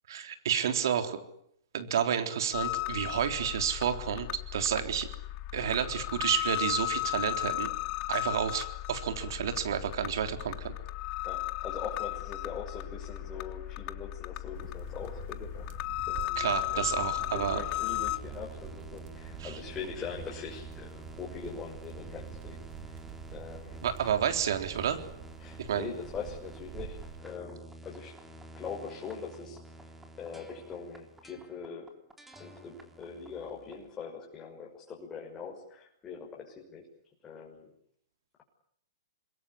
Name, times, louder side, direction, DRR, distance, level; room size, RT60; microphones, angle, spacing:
voice 1, 0.1-1.2 1.7-4.3 4.5-5.1 5.5-7.7 8.1-10.7 16.4-17.6 19.4-19.6 23.8-25.0 25.6-25.9, right 8 dB, 65° right, 7 dB, 3.8 m, -30 dB
sound 1, 2.5-18.2, left 20 dB, 40° left, 1.3 m, -35 dB
voice 2, 11.2-15.7 16.1-16.8 17.3-22.6 23.3-23.8 25.4-28.2 28.5-29.8 30.1-31.9 32.3-36.9 37.2-37.7, left 6 dB, 20° left, -2 dB, 6.2 m, -42 dB
sound 2, 14.5-27.2, right 8 dB, 40° right, 3.7 m, -46 dB
sound 3, 16.8-33.9, right 1 dB, 5° right, 3.8 m, -49 dB
27.0 x 22.0 x 9.9 m, 0.71 s
hypercardioid pair, 125°, 2 cm